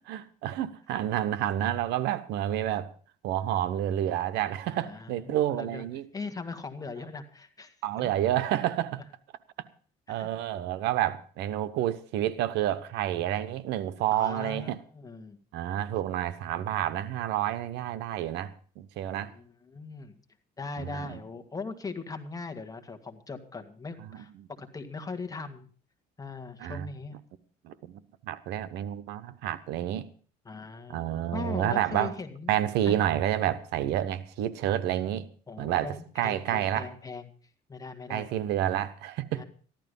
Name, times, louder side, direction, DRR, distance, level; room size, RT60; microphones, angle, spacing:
voice 1, 0.1-2.9 3.2-6.0 7.8-9.0 10.1-14.8 15.5-19.3 20.8-21.2 24.0-24.5 26.6-26.9 27.6-28.0 28.3-30.1 30.9-32.1 32.5-35.3 35.6-36.9 38.1-39.4, right 12 dB, 85° right, 1.0 m, -29 dB
voice 2, 4.7-5.9 6.1-8.1 10.1-10.3 14.1-15.4 19.2-20.2 20.6-24.3 24.6-25.7 26.2-27.2 30.5-31.0 31.3-32.6 32.9-33.0 35.5-37.3 37.7-38.3 39.3-39.4, left 4 dB, 20° left, 1.9 m, -39 dB
14.5 x 12.0 x 5.4 m
cardioid pair, 110°, 17 cm